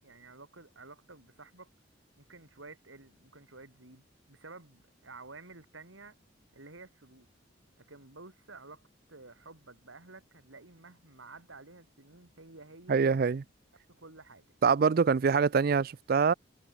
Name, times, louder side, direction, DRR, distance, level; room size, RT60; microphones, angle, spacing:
voice 1, 0.0-1.7 2.2-6.2 6.5-7.3 7.8-13.0 13.9-14.5, right 3 dB, 85° right, 3.8 m, -52 dB
voice 2, 12.9-13.4 14.6-16.3, right 5 dB, 50° right, 0.4 m, -24 dB
head